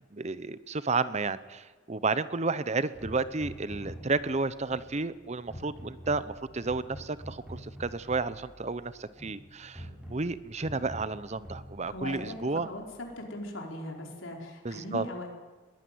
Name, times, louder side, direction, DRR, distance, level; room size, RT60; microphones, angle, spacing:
voice 1, 0.1-12.7 14.6-15.0, right 3 dB, 35° right, 15 dB, 0.8 m, -32 dB
sound 1, 2.9-13.1, equal, 5° right, 7.6 m, -46 dB
voice 2, 11.9-12.8 13.2-15.3, left 1 dB, 80° left, 1 dB, 4.8 m, -39 dB
21.5 x 16.5 x 9.5 m, 1.3 s
head